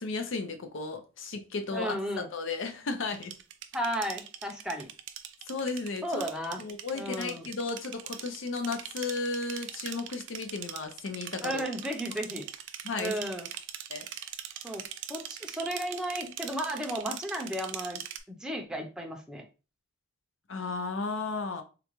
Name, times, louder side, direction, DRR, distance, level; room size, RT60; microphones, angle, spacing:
voice 1, 0.0-3.3 5.5-6.2 6.6-11.6 12.8-13.2 13.9-14.1 20.5-21.6, left 3 dB, 75° left, 0.6 m, -34 dB
voice 2, 1.7-2.3 3.7-4.9 6.0-6.6 6.9-7.5 11.4-12.5 13.0-13.5 14.6-14.8 15.1-18.0 18.3-19.4, equal, 5° right, 0.5 m, -34 dB
sound 1, 3.1-18.2, right 10 dB, 70° right, 0.4 m, -42 dB
3.8 x 2.2 x 3.0 m
head